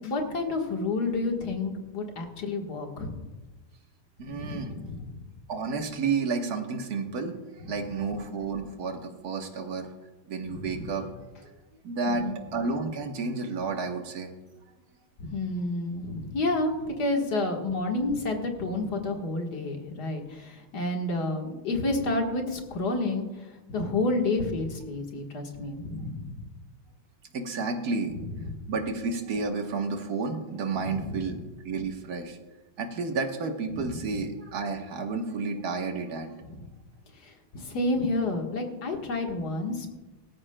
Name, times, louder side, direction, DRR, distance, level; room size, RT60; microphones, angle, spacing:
voice 1, 0.0-3.2 4.2-5.0 7.7-7.8 10.5-10.9 12.1-12.4 15.2-23.2 23.5-26.4 30.8-31.2 33.7-34.0 36.4-36.6 37.2-39.9, left 2 dB, 50° left, 2 dB, 1.9 m, -30 dB
voice 2, 4.2-4.7 5.5-9.9 10.3-11.0 11.8-14.3 27.3-28.2 28.7-31.4 31.6-32.4 32.8-36.3, right 4 dB, 50° right, 4 dB, 1.5 m, -31 dB
18.0 x 14.0 x 2.2 m, 1.2 s
omnidirectional pair, 2.3 m